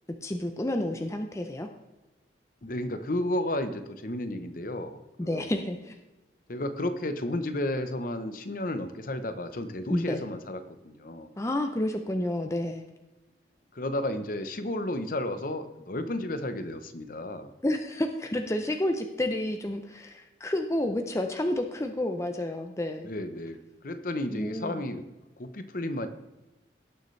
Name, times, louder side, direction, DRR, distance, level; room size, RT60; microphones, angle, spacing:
voice 1, 0.2-1.7 5.2-5.9 9.9-10.2 11.4-12.8 17.6-23.1 24.3-24.8, left 1 dB, 15° left, 5 dB, 0.6 m, -30 dB
voice 2, 2.6-5.4 6.5-11.3 13.7-17.5 23.0-23.6 23.8-25.0 25.4-26.1, left 1 dB, 50° left, 9 dB, 0.8 m, -32 dB
17.5 x 6.8 x 3.2 m, 1.1 s
head